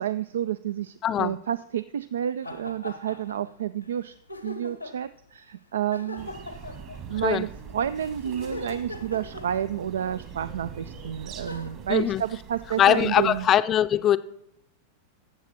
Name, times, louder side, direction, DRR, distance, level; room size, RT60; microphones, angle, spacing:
voice 1, 0.0-4.1 4.4-6.6 7.1-13.5, right 10 dB, 65° right, 0.3 m, -30 dB
voice 2, 1.0-1.4 7.2-7.5 11.9-12.2 12.8-14.2, left 11 dB, 30° left, 0.5 m, -21 dB
sound 1, 2.4-3.5 3.8-3.9 4.3-5.1 5.9-7.3 8.2-10.0 10.9-11.0 11.5-11.7, left 1 dB, 90° left, 1.0 m, -40 dB
sound 2, 6.2-13.5, right 6 dB, 40° right, 1.7 m, -43 dB
14.0 x 7.4 x 4.3 m
figure-of-eight pair, 90°, 0 cm